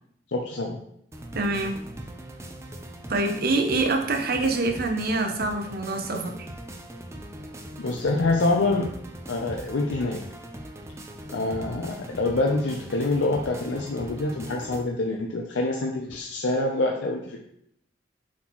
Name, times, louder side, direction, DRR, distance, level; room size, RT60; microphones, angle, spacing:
voice 1, 0.3-0.8 7.8-8.9 9.3-10.3 11.3-17.4, left 2 dB, 80° left, 0 dB, 0.6 m, -26 dB
sound 1, 1.1-14.8, right 1 dB, 15° right, 0.5 m, -40 dB
voice 2, 1.3-1.8 3.1-6.5, right 2 dB, 55° right, 4 dB, 0.9 m, -25 dB
7.3 x 4.4 x 3.0 m, 0.72 s
head